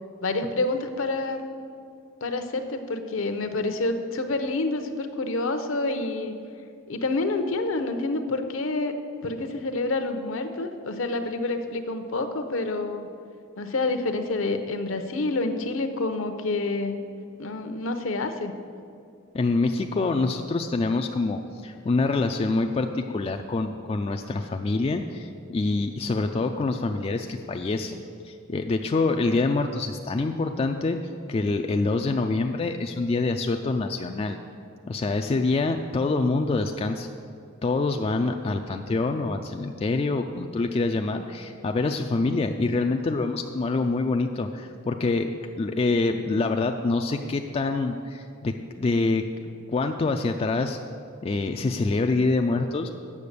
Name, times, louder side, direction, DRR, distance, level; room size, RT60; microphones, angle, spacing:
voice 1, 0.2-1.4 2.2-6.4 6.9-8.9 9.2-13.1 13.6-17.0 17.4-18.5, left 2 dB, 70° left, 7 dB, 0.7 m, -28 dB
voice 2, 19.3-31.0 31.3-34.4 34.9-37.1 37.6-45.3 45.6-49.2 49.7-50.8 51.2-52.9, left 3 dB, 30° left, 5 dB, 0.3 m, -26 dB
8.5 x 7.0 x 6.7 m, 2.4 s
head